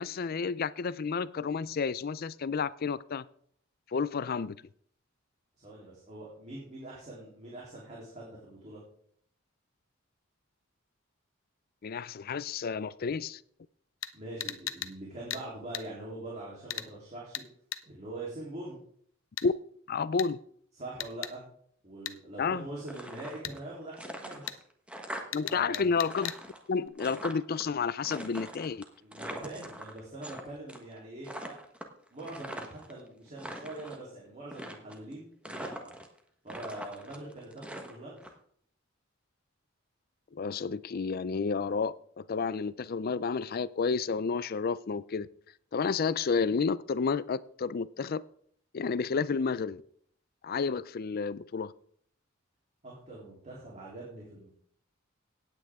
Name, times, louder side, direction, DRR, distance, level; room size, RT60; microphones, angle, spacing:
voice 1, 0.0-3.2 3.9-4.6 11.8-13.4 19.4-19.5 19.9-20.4 22.4-22.7 25.3-26.3 26.7-28.8 40.3-45.3 45.7-48.2 48.7-49.8 50.4-51.7, left 5 dB, 50° left, 0.4 m, -31 dB
voice 2, 5.6-8.8 14.1-17.4 17.9-18.8 20.7-21.5 21.8-24.6 25.5-25.9 29.0-31.5 32.1-36.0 36.4-38.2 52.8-54.5, right 2 dB, 35° right, 3.3 m, -43 dB
sound 1, 14.0-14.1 14.4-14.9 15.3-15.4 15.7-15.9 16.7-16.9 17.3-17.5 17.7-17.8 19.4-19.5 20.2-20.3 21.0-21.3 22.0-22.2 23.4-23.6 24.5-24.6 25.3-26.4 26.8-26.9, left 11 dB, 80° left, 0.8 m, -37 dB
sound 2, 22.8-23.7 23.9-25.6 25.8-27.6 28.0-30.4 30.7-31.0 31.2-32.9 33.3-34.0 34.5-35.1 35.4-36.2 36.5-38.3, right 1 dB, 5° right, 1.2 m, -42 dB
17.0 x 8.9 x 3.6 m
head